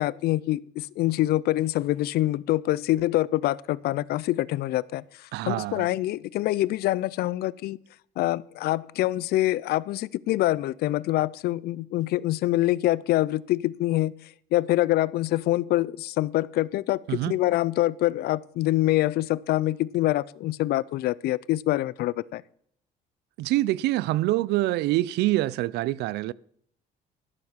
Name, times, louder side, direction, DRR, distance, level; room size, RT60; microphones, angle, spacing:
voice 1, 0.0-5.0 5.4-7.8 8.2-14.1 14.5-22.4, left 16 dB, 70° left, 0.4 m, -25 dB
voice 2, 5.3-5.9 17.1-17.3 23.4-26.3, right 17 dB, 80° right, 0.4 m, -25 dB
12.5 x 7.2 x 6.3 m
cardioid pair, 110°, 17 cm